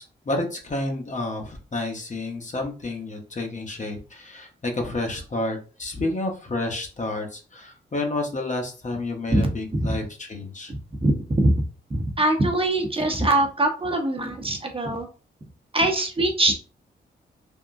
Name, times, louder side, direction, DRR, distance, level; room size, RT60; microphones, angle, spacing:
voice 1, 0.0-10.7, left 2 dB, 40° left, 3 dB, 1.0 m, -30 dB
voice 2, 10.7-11.5 11.9-15.1 15.7-16.5, right 1 dB, 30° right, 2 dB, 0.9 m, -22 dB
3.6 x 2.1 x 2.6 m, 0.36 s
supercardioid pair, 50°, 20 cm